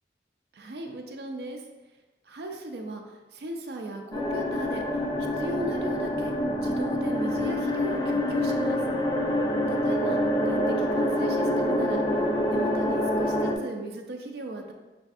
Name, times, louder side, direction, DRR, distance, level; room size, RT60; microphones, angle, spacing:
voice 1, 0.5-1.6 2.2-4.8 5.4-6.3 6.6-8.8 9.7-10.2 10.4-14.7, right 1 dB, 70° right, 3 dB, 0.5 m, -37 dB
sound 1, 4.1-13.6, left 1 dB, 20° left, 0.3 m, -26 dB
6.0 x 2.5 x 2.4 m, 1.1 s
head